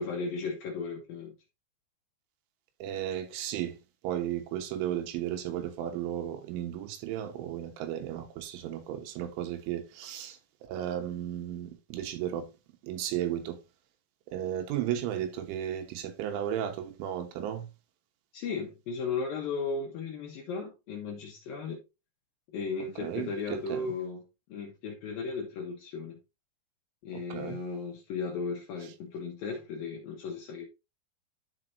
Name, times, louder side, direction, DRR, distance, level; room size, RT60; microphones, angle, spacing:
voice 1, 0.0-1.3 18.3-21.8 22.5-24.2 24.5-26.2 27.0-30.7, left 4 dB, 70° left, 2.3 m, -35 dB
voice 2, 2.8-3.8 4.0-12.5 12.8-13.6 14.3-17.7 23.0-23.9 27.1-27.6, right 11 dB, 90° right, 3.5 m, -34 dB
12.0 x 4.9 x 2.6 m
omnidirectional pair, 5.6 m